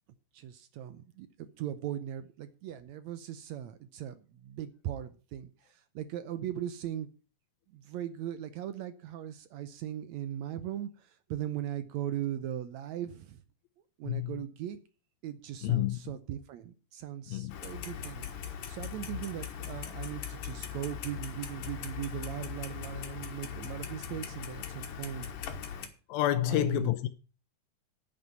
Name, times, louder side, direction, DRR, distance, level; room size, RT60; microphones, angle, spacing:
voice 1, 0.3-7.1 7.7-13.4 14.0-14.8 15.2-25.3 26.5-26.9, right 11 dB, 80° right, 1.6 m, -39 dB
voice 2, 14.0-14.4 15.6-16.0 17.3-17.6 26.1-27.1, left 14 dB, 90° left, 2.5 m, -29 dB
Clock, 17.5-25.9, left 8 dB, 70° left, 3.0 m, -40 dB
9.9 x 9.2 x 5.6 m
omnidirectional pair, 4.1 m